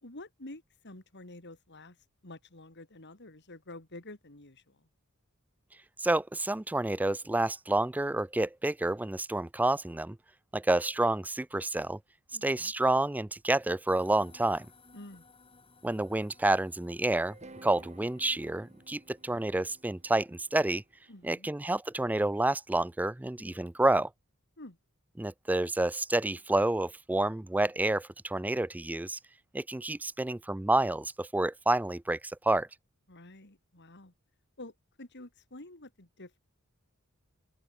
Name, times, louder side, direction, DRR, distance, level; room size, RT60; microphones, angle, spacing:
voice 1, 0.0-2.0 2.2-4.9 12.3-12.7 14.9-15.3 21.1-21.5 24.6-24.8 33.1-34.1 34.6-36.4, left 2 dB, 55° left, 3.4 m, -49 dB
voice 2, 6.0-10.2 10.5-12.0 12.4-14.7 15.8-17.4 17.6-20.8 21.2-24.1 25.2-29.2 29.5-32.7, right 2 dB, 10° right, 0.3 m, -29 dB
sound 1, 13.9-21.5, left 3 dB, 25° left, 3.1 m, -62 dB
sound 2, 17.3-21.4, right 2 dB, 30° right, 3.0 m, -54 dB
open air
head